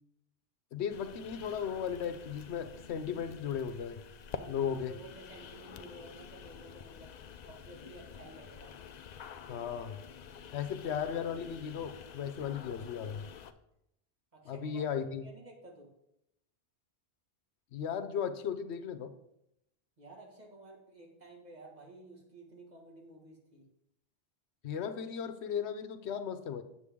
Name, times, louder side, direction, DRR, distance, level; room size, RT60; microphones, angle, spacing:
voice 1, 0.7-4.0 4.5-4.9 9.5-10.0 10.5-13.3 14.4-15.3 17.7-19.1 24.6-26.6, left 7 dB, 85° left, 11 dB, 0.9 m, -36 dB
sound 1, 0.9-13.5, left 7 dB, 55° left, 0.5 m, -49 dB
voice 2, 4.3-7.2 7.4-8.7 14.3-15.9 20.0-23.6, right 2 dB, 40° right, -1 dB, 1.8 m, -53 dB
8.3 x 7.0 x 3.6 m, 0.81 s
omnidirectional pair, 1.1 m